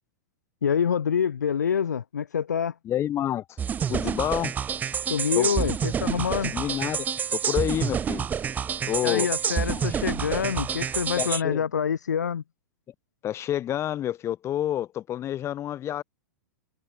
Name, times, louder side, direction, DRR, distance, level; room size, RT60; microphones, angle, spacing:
voice 1, 0.6-2.7 5.1-6.5 9.0-12.4, left 7 dB, 80° left, 0.6 m, -26 dB
voice 2, 2.8-3.6 3.9-4.5 5.4-5.7 6.5-7.1 7.3-8.3 8.9-9.3 9.6-9.8 11.2-11.6 13.2-16.0, left 11 dB, 30° left, 4.1 m, -28 dB
sound 1, 3.6-11.4, right 7 dB, 20° right, 0.6 m, -28 dB
hypercardioid pair, 105°, 9 cm